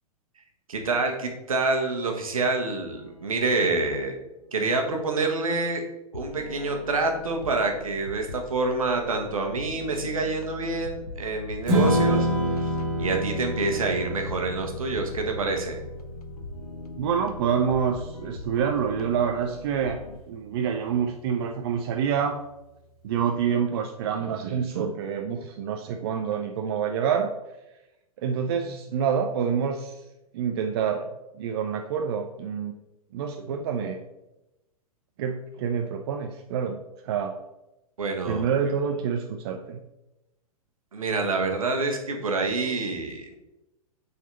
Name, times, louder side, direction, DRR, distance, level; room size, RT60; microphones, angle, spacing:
voice 1, 0.7-4.2 4.5-5.8 6.1-12.3 12.6-12.7 13.0-15.8 38.0-38.5 40.9-43.3, right 3 dB, 65° right, 3 dB, 1.3 m, -27 dB
sound 1, 6.1-20.2, left 3 dB, 80° left, 0.7 m, -41 dB
Strum, 11.7-18.0, equal, 25° right, 1.5 m, -28 dB
voice 2, 17.0-20.0 20.3-22.4 23.0-27.3 28.2-30.0 30.3-31.1 31.3-32.7 33.1-34.0 35.2-36.8 37.0-37.4 38.3-39.8, right 7 dB, 40° right, 4 dB, 0.5 m, -27 dB
7.1 x 4.2 x 3.9 m, 0.95 s
figure-of-eight pair, 105°, 19 cm